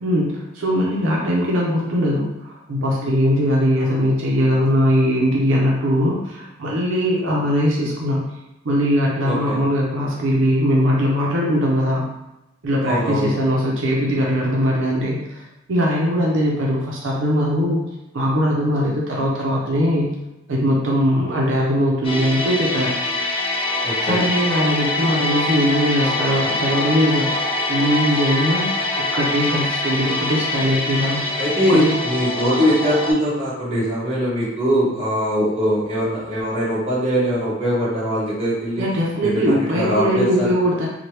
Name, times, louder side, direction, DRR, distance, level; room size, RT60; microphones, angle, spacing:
voice 1, 0.0-8.2 8.6-12.1 12.6-17.8 18.1-20.1 20.5-23.0 24.0-28.8 29.1-31.3 31.7-32.0 38.8-40.9, equal, 85° right, -3 dB, 0.6 m, -20 dB
voice 2, 9.3-9.6 12.8-13.3 23.8-24.3 31.4-38.8 39.2-40.5, equal, 30° right, -8 dB, 1.2 m, -21 dB
sound 1, 22.0-33.1, left 2 dB, 30° left, 0.4 m, -24 dB
2.9 x 2.2 x 3.1 m, 0.95 s
head